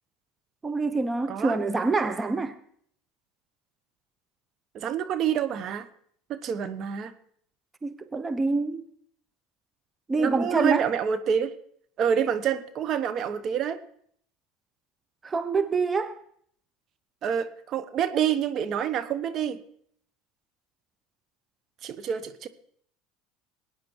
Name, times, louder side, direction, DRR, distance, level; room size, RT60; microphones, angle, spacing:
voice 1, 0.6-2.6 7.8-8.8 10.1-10.9 15.2-16.2, right 3 dB, 20° right, 0.9 m, -26 dB
voice 2, 4.7-5.9 6.3-7.1 10.2-11.5 12.0-13.8 17.2-19.6 21.8-22.5, right 8 dB, 50° right, 1.1 m, -27 dB
21.0 x 9.4 x 4.7 m
hypercardioid pair, 75°, 0 cm